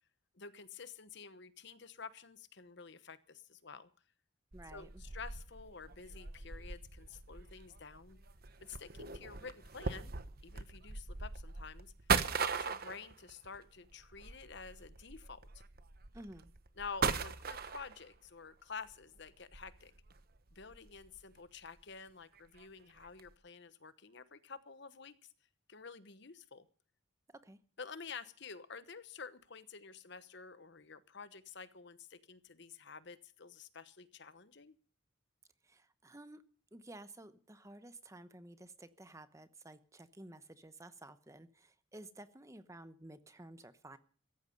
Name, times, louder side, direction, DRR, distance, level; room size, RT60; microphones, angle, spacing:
voice 1, 0.3-3.9 4.7-8.2 8.6-10.1 10.4-11.9 12.4-15.4 16.8-19.9 20.5-25.2 25.7-26.7 27.8-34.7, left 5 dB, 55° left, 14 dB, 1.1 m, -50 dB
voice 2, 4.5-5.0 16.1-16.5 27.3-27.6 35.6-36.4 36.7-44.0, right 1 dB, 15° right, 12 dB, 0.9 m, -53 dB
sound 1, 4.5-18.3 18.9-21.4 21.7-21.8 22.4-22.7 23.0-23.3, right 5 dB, 45° right, 1.0 m, -40 dB
16.0 x 14.5 x 5.3 m, 0.43 s
head